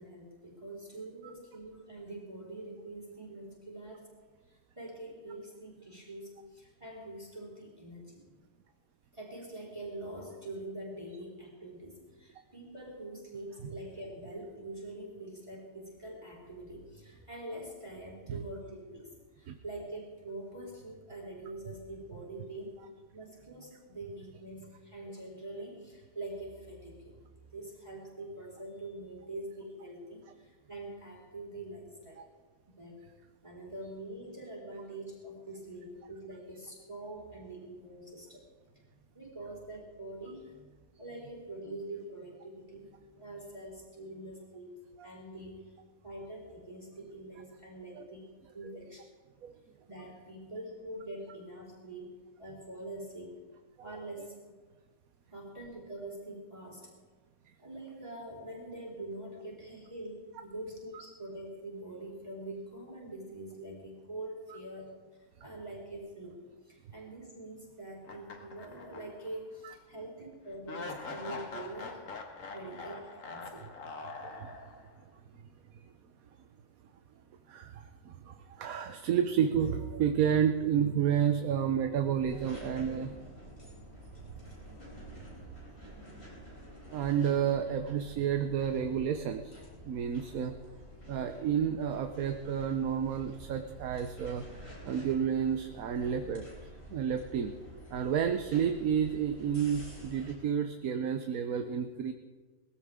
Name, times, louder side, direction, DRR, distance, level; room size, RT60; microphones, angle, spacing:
voice 1, 0.0-4.1 4.5-8.3 9.1-22.7 23.1-27.1 27.5-32.2 32.7-33.0 33.4-38.4 39.1-40.6 41.0-42.9 43.1-44.7 45.0-45.8 46.0-49.0 49.9-53.3 53.8-54.3 55.3-56.9 57.6-64.9 65.4-66.4 66.6-72.0 72.5-73.7, right 1 dB, 20° right, -3 dB, 3.5 m, -44 dB
sound 1, 68.0-69.3 69.7-69.8 70.7-75.0, left 3 dB, 70° left, 1.9 m, -43 dB
voice 2, 74.2-74.6 75.3-75.4 75.7-75.8 77.5-83.1 86.9-90.5 91.1-94.4 94.8-96.5 96.9-97.5 97.9-102.1, right 8 dB, 90° right, 6 dB, 1.2 m, -30 dB
sound 2, 82.2-100.3, equal, 45° left, 4.7 m, -50 dB
20.0 x 15.0 x 3.6 m, 1.4 s
omnidirectional pair, 1.4 m